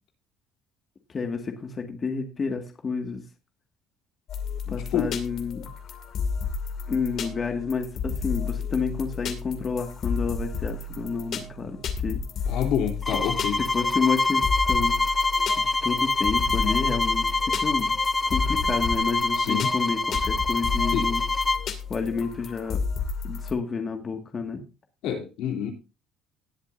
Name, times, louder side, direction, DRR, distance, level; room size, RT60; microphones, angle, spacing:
voice 1, 1.1-3.2 4.7-5.7 6.9-12.2 13.6-15.0 15.6-18.0 18.3-21.2 21.9-22.8 23.2-24.6, left 5 dB, 30° left, 4 dB, 2.0 m, -30 dB
sound 1, 4.3-23.5, left 5 dB, 55° left, 2.3 m, -32 dB
voice 2, 4.6-5.1 12.4-13.6 18.5-18.6 19.4-19.7 20.9-21.1 25.0-25.7, left 8 dB, 75° left, 1 dB, 3.2 m, -28 dB
sound 2, 13.0-21.7, left 3 dB, 15° left, 0.4 m, -25 dB
19.0 x 8.0 x 2.7 m, 0.31 s
cardioid pair, 110°, 0 cm